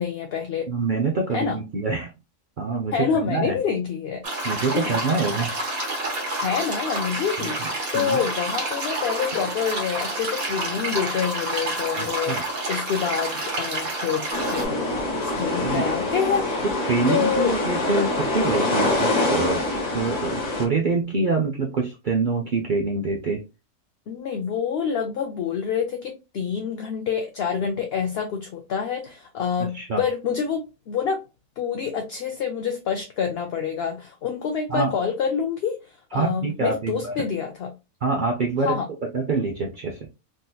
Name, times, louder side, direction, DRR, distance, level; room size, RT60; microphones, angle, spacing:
voice 1, 0.0-0.7 1.3-1.6 2.9-4.2 4.7-4.9 6.4-12.4 12.7-14.8 15.2-16.6 17.1-17.6 24.1-31.2 31.6-37.7 38.6-38.9, left 7 dB, 65° left, 0.6 m, -27 dB
voice 2, 0.7-2.1 2.6-3.6 4.4-5.5 7.6-7.7 7.9-8.2 12.0-12.4 15.6-15.9 16.8-19.7 19.9-23.4 29.7-30.0 34.7-34.9 36.1-37.1 38.0-38.7 39.0-40.0, right 4 dB, 60° right, 0.5 m, -25 dB
sound 1, 4.2-14.6, right 1 dB, 80° right, 1.6 m, -29 dB
sound 2, 14.3-20.7, left 2 dB, 35° left, 0.9 m, -25 dB
3.7 x 2.6 x 2.3 m
omnidirectional pair, 1.5 m